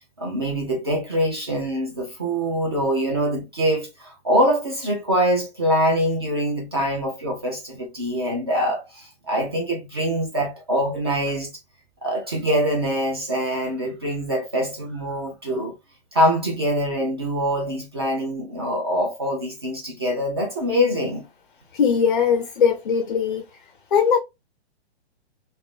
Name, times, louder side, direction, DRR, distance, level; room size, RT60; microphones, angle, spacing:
voice 1, 0.2-11.5 12.0-15.8 16.1-21.3, equal, 25° right, 0.5 m, -24 dB
voice 2, 21.7-23.4 23.9-24.2, left 6 dB, 45° left, 0.5 m, -20 dB
2.7 x 2.5 x 3.2 m
hypercardioid pair, 180°, 33 cm